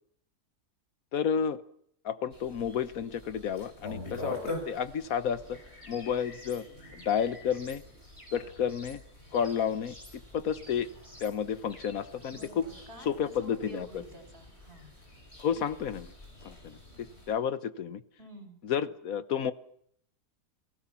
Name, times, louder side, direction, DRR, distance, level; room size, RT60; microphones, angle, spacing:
voice 1, 1.1-1.6 2.0-5.6 5.9-6.7 6.9-7.8 8.3-9.0 9.3-9.9 10.3-10.9 11.2-12.6 13.0-14.0 15.4-16.1 16.4-18.0 18.6-19.5, left 8 dB, 60° left, 13 dB, 1.4 m, -31 dB
sound 1, 2.3-17.3, left 2 dB, 40° left, 6.9 m, -46 dB
sound 2, 5.8-6.6 7.0-7.8 8.2-9.0 9.3-10.2 10.5-11.4 11.7-12.5, equal, 20° left, 5.3 m, -53 dB
voice 2, 12.3-14.9 18.2-18.6, right 1 dB, 35° right, 5 dB, 5.4 m, -49 dB
29.5 x 18.5 x 5.9 m, 0.68 s
omnidirectional pair, 1.7 m